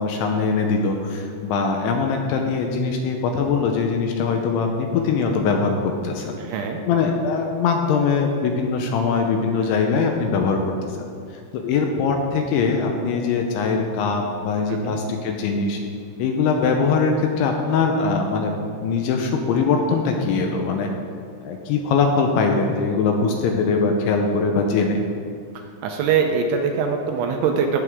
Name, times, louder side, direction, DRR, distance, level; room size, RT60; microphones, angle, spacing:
voice 1, 0.0-6.4 6.9-10.6 10.9-11.1 11.5-15.8 16.2-18.5 18.8-20.9 21.4-25.0, left 4 dB, 80° left, 3 dB, 3.0 m, -22 dB
voice 2, 6.4-6.8 14.7-15.0 25.8-27.8, right 6 dB, 80° right, 3 dB, 3.1 m, -23 dB
18.0 x 8.1 x 3.7 m, 2.2 s
omnidirectional pair, 5.6 m